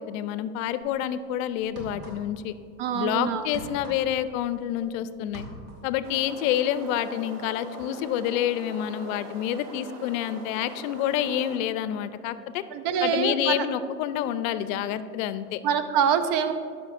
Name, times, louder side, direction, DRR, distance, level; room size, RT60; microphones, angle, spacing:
voice 1, 0.0-2.6 2.9-5.5 5.8-12.6 13.0-15.6, left 11 dB, 60° left, 13 dB, 0.5 m, -28 dB
sound 1, 0.8-1.0 1.6-2.5 2.8-4.9 5.2-6.0, right 1 dB, 35° right, 1.8 m, -43 dB
voice 2, 2.8-3.5 12.7-13.6 15.6-16.5, right 7 dB, 50° right, 10 dB, 0.7 m, -25 dB
sound 2, 6.0-11.6, right 3 dB, 75° right, 1.1 m, -43 dB
12.0 x 5.9 x 2.5 m, 2.3 s
hypercardioid pair, 100°, 47 cm